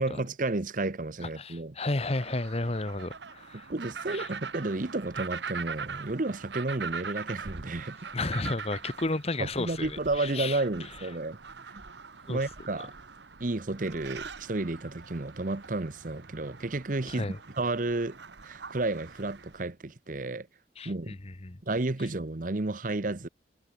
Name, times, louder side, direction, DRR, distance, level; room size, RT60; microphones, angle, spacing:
voice 1, 0.0-1.7 3.5-8.1 9.4-11.4 11.6-11.8 12.3-12.9 13.4-17.3 17.6-18.2 18.4-20.5 20.8-21.2 21.6-23.3, right 2 dB, 50° right, 0.9 m, -32 dB
voice 2, 1.2-3.7 4.1-4.3 8.1-10.6 12.3-12.4 17.1-17.4 20.8-21.6, left 2 dB, 35° left, 1.2 m, -33 dB
sound 1, 1.9-19.6, right 5 dB, 80° right, 1.4 m, -42 dB
head